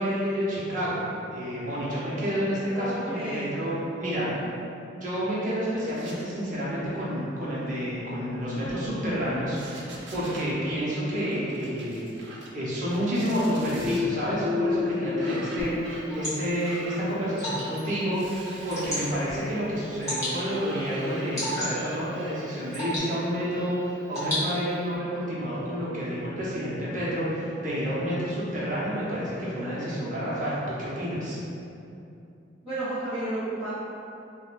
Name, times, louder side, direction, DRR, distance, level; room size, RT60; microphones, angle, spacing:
voice 1, 0.0-4.3 5.0-12.0 12.5-15.7 16.1-18.2 18.6-31.4, equal, 45° right, -8 dB, 0.9 m, -29 dB
voice 2, 2.7-3.5 32.6-33.7, right 1 dB, 5° right, -21 dB, 1.2 m, -32 dB
sound 1, 5.9-6.6 6.8-7.0 8.3-9.2 9.4-10.5 11.2-12.6 12.9-14.0 14.9-23.0, right 2 dB, 75° right, 0.5 m, -44 dB
sound 2, 13.6-17.3, left 4 dB, 60° left, 0.7 m, -31 dB
Water / Drip, 15.6-25.0, equal, 20° left, 1.4 m, -36 dB
4.7 x 2.2 x 2.5 m, 2.7 s
head